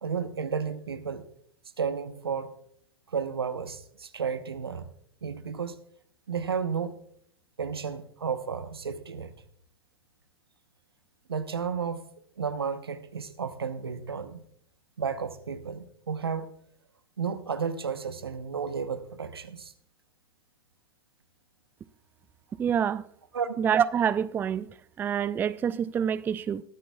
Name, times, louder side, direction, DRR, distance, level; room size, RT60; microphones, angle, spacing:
voice 1, 0.0-1.3 1.8-2.5 3.1-4.9 5.2-5.8 6.3-7.0 7.6-9.3 11.3-12.0 12.4-14.4 15.0-16.5 17.2-19.7 23.3-23.6, right 6 dB, 90° right, 0.9 m, -32 dB
voice 2, 22.6-23.0 23.6-24.7 25.0-26.6, right 8 dB, 15° right, 0.3 m, -26 dB
21.0 x 10.0 x 2.3 m
hypercardioid pair, 105°, 12 cm